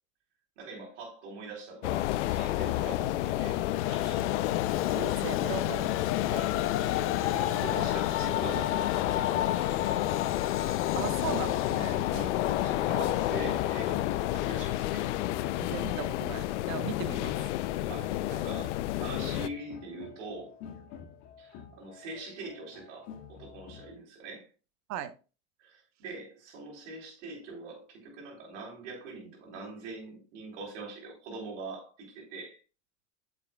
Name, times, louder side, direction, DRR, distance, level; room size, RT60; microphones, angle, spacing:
voice 1, 0.6-4.2 6.2-6.6 6.9-9.5 12.1-15.1 17.0-17.2 17.8-20.6 21.4-24.5 25.6-32.6, right 3 dB, 80° right, 4.0 m, -43 dB
sound 1, 1.8-19.5, left 15 dB, 80° left, 0.6 m, -30 dB
Train, 3.7-17.2, left 12 dB, 40° left, 0.6 m, -35 dB
voice 2, 4.9-5.9 10.9-12.1 15.6-17.4 24.9-25.2, right 10 dB, 50° right, 1.0 m, -38 dB
sound 2, 8.1-23.9, left 7 dB, 60° left, 1.9 m, -48 dB
8.9 x 7.6 x 2.3 m
supercardioid pair, 110°, 35 cm